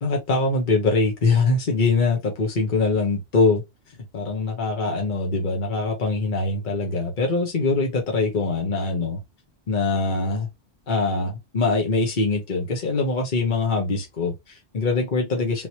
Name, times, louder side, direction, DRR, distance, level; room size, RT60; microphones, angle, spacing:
voice 1, 0.0-3.6 4.1-9.2 9.7-10.5 10.9-15.7, left 3 dB, 45° left, 1.3 m, -23 dB
3.8 x 3.1 x 2.9 m
omnidirectional pair, 1.2 m